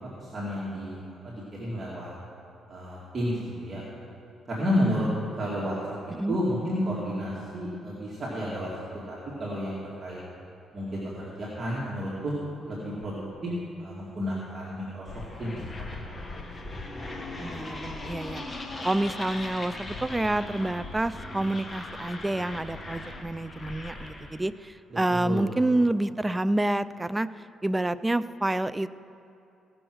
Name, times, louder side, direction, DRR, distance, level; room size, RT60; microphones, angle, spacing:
voice 1, 0.2-1.0 1.2-2.1 2.7-3.8 4.5-5.1 5.4-5.8 6.3-8.7 9.1-10.2 10.7-13.5 13.8-15.1 15.4-15.6 25.1-25.5, equal, 35° right, -7 dB, 2.2 m, -31 dB
sound 1, 15.0-24.4, left 2 dB, 25° left, 1.3 m, -39 dB
voice 2, 17.4-18.4 18.8-27.3 27.6-29.0, right 1 dB, 15° right, 15 dB, 0.3 m, -28 dB
17.0 x 6.3 x 6.2 m, 2.7 s
cardioid pair, 90°, 0 cm